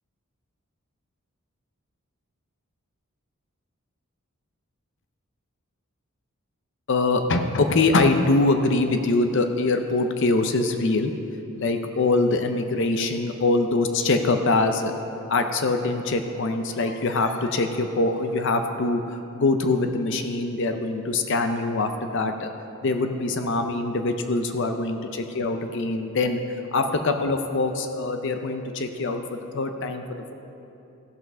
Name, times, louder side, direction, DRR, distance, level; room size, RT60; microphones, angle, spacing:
voice 1, 6.9-11.1 11.6-14.9 15.3-22.5 22.8-26.4 26.7-30.3, left 3 dB, 55° left, 6 dB, 0.6 m, -23 dB
14.5 x 5.7 x 6.1 m, 2.8 s
head